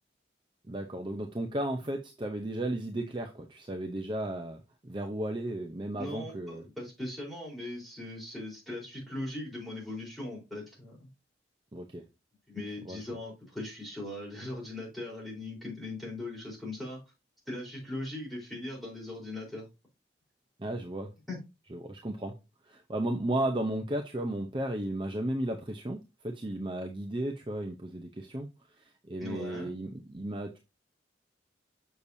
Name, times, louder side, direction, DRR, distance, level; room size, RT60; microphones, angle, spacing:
voice 1, 0.7-6.6 11.7-12.1 12.9-13.0 20.6-21.1 21.7-22.4 22.7-28.5 28.8-30.6, right 1 dB, 25° right, 0.7 m, -34 dB
voice 2, 5.9-11.1 12.5-17.0 17.5-19.7 21.3-21.4 29.2-29.7, left 2 dB, ahead, 4.0 m, -39 dB
6.9 x 6.6 x 2.7 m
head